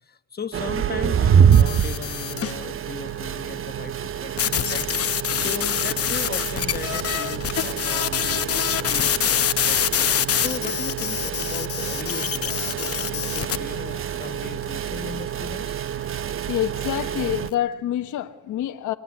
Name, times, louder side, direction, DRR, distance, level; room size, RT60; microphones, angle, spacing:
voice 1, 0.0-15.8, left 6 dB, 30° left, 1.2 m, -37 dB
sound 1, 0.5-17.5, right 8 dB, 45° right, 0.7 m, -26 dB
sound 2, 1.5-2.6 4.4-13.6, left 10 dB, 50° left, 0.9 m, -25 dB
sound 3, 1.9-2.1 2.4-2.8 3.1-3.3 3.9-4.3 4.7-4.8 5.1-6.1 6.3-6.5 6.7-10.5 10.9-11.2 11.5-13.1 13.4-14.3 14.6-14.7 15.2-16.1 16.5-17.7, right 4 dB, 70° right, 5.7 m, -51 dB
voice 2, 16.2-18.9, left 12 dB, 75° left, 1.1 m, -27 dB
26.0 x 19.0 x 9.6 m
cardioid pair, 90°, 30 cm